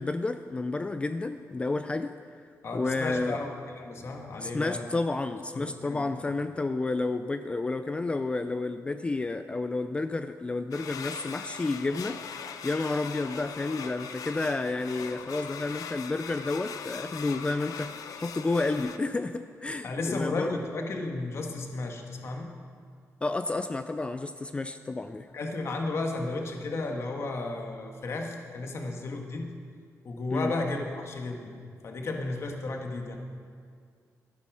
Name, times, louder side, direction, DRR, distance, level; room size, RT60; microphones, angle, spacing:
voice 1, 0.0-2.1 2.7-3.4 4.4-20.5 23.2-25.3 30.3-30.5, left 3 dB, 20° left, 9 dB, 0.3 m, -31 dB
voice 2, 2.6-4.9 5.5-6.3 19.8-22.5 25.3-29.5 30.0-31.6 31.8-33.2, left 2 dB, 50° left, 3 dB, 1.4 m, -33 dB
sound 1, 10.7-19.0, left 7 dB, 80° left, 0.6 m, -40 dB
12.5 x 9.7 x 6.2 m, 2.1 s
wide cardioid pair, 150°, 6 cm